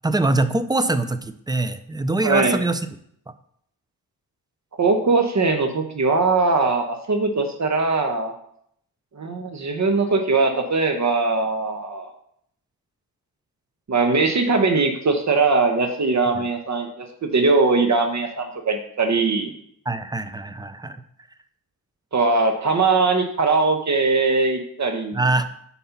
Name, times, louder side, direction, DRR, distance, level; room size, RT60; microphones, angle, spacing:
voice 1, 0.0-2.8 16.4-16.5 19.9-21.0 25.1-25.5, right 2 dB, 10° right, 12 dB, 0.5 m, -23 dB
voice 2, 2.2-2.6 4.8-8.3 9.1-12.1 13.9-19.5 22.1-25.2, right 3 dB, 45° right, 5 dB, 1.0 m, -21 dB
5.4 x 4.2 x 5.7 m, 0.70 s
cardioid pair, 60°, 39 cm